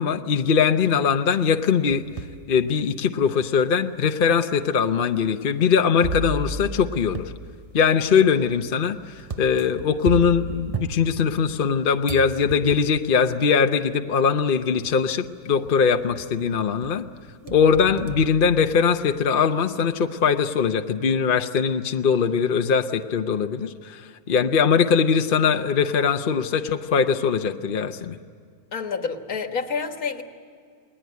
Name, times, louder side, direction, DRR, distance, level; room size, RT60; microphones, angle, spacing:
voice 1, 0.0-2.0 2.5-7.3 7.7-17.0 17.5-28.2, left 6 dB, 45° left, 7 dB, 0.9 m, -21 dB
sound 1, 1.5-2.4 3.0-3.1 4.0-4.1 6.0-11.7 12.1-13.1 14.2-14.3 14.8-15.3 15.6-16.4 16.8-19.2, right 4 dB, 30° right, 0.7 m, -34 dB
voice 2, 28.7-30.2, left 5 dB, 70° left, 6 dB, 2.0 m, -28 dB
29.0 x 20.0 x 9.4 m, 2.2 s
omnidirectional pair, 1.6 m